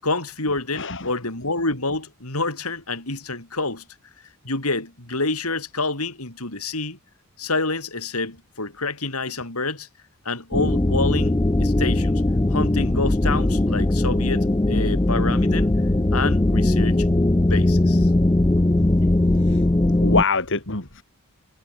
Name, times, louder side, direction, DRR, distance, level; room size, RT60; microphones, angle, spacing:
voice 1, 0.0-3.8 4.4-7.0 7.4-9.9 10.2-12.2 12.5-15.7 16.1-17.1 17.4-18.1, left 3 dB, 85° left, 8.0 m, -27 dB
voice 2, 0.7-1.1 19.4-19.6 20.0-21.0, left 4 dB, 60° left, 3.4 m, -24 dB
sound 1, 10.5-20.2, left 1 dB, 15° left, 0.5 m, -19 dB
head